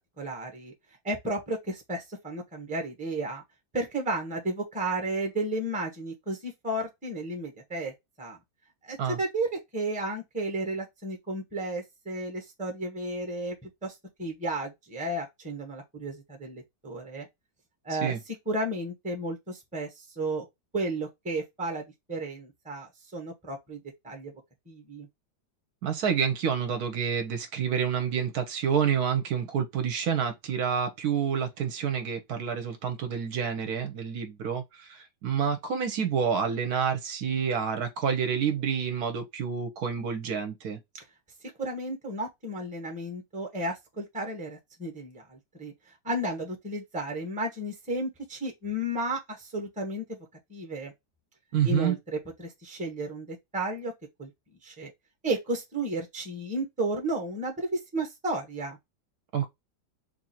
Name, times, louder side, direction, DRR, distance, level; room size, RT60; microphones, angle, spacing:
voice 1, 0.2-0.7 1.0-3.4 3.7-8.4 8.8-17.3 17.8-20.4 20.7-24.3 24.7-25.1 41.6-45.7 46.0-50.2 50.5-50.9 51.6-53.9 54.2-54.3 54.6-54.9 55.2-58.8, right 1 dB, 5° right, 0.7 m, -33 dB
voice 2, 25.8-40.8 51.5-52.0 59.3-59.5, right 7 dB, 70° right, 1.1 m, -28 dB
3.0 x 2.6 x 4.1 m
omnidirectional pair, 1.8 m